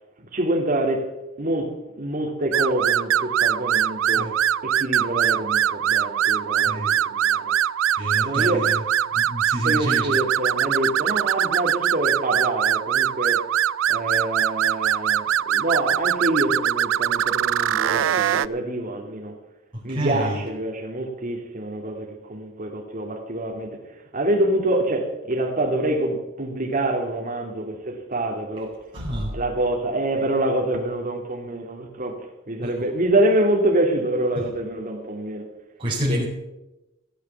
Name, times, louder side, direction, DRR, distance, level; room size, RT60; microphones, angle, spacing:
voice 1, 0.3-1.1 1.4-4.3 4.6-7.5 8.2-8.7 9.6-13.4 13.9-19.3 19.8-23.8 24.1-28.7 29.3-35.5 36.1-36.2, right 1 dB, 40° right, 2.4 m, -26 dB
sound 1, 2.5-18.5, right 10 dB, 70° right, 0.4 m, -22 dB
voice 2, 8.0-8.8 9.1-10.2 19.7-20.4 28.9-29.3 32.6-32.7 35.8-36.3, equal, 25° right, 4.3 m, -28 dB
15.5 x 8.3 x 7.3 m
head